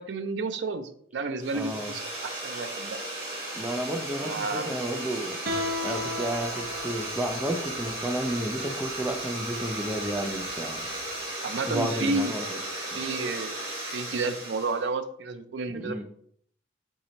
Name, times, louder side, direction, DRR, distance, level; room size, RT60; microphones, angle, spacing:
voice 1, 0.0-3.0 4.2-4.8 11.4-12.3 12.9-13.6 13.9-16.0, right 3 dB, 85° right, 9 dB, 0.5 m, -31 dB
sound 1, 1.4-14.8, right 1 dB, 30° right, 1.4 m, -35 dB
voice 2, 1.5-1.9 3.5-5.4 5.8-10.9 11.7-12.6 12.9-13.0 15.7-16.0, right 1 dB, 10° right, 2 dB, 0.3 m, -32 dB
Guitar, 5.5-11.2, left 2 dB, 55° right, 0.7 m, -37 dB
3.9 x 2.7 x 4.3 m, 0.63 s
head